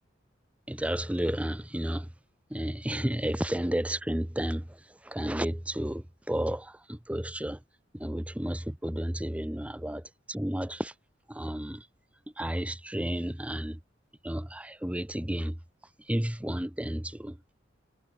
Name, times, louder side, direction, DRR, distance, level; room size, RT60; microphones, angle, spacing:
voice 1, 0.7-2.1 2.5-7.6 7.9-10.9 11.3-11.9 12.4-13.8 14.2-15.6 16.0-17.4, right 1 dB, 5° right, 0.8 m, -32 dB
head